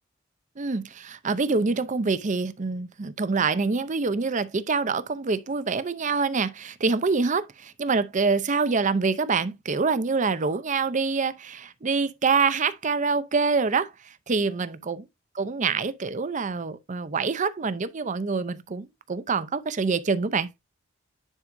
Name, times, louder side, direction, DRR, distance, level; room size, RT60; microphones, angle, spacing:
voice 1, 0.6-15.0 15.4-20.5, right 4 dB, 40° right, 0.6 m, -26 dB
9.9 x 4.8 x 2.6 m
head